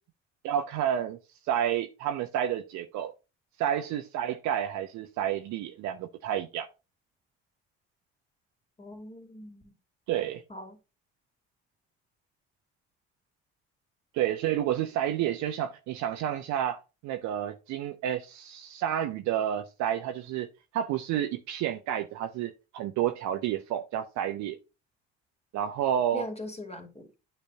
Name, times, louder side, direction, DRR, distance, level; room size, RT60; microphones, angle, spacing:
voice 1, 0.4-1.2 1.5-3.1 3.6-6.7 10.1-10.4 14.1-20.5 20.7-24.6 25.5-26.3, right 10 dB, 60° right, 0.9 m, -30 dB
voice 2, 8.8-9.7 10.5-10.8 26.1-27.2, equal, 20° left, 2.7 m, -40 dB
8.9 x 3.3 x 5.3 m
figure-of-eight pair, 50°, 33 cm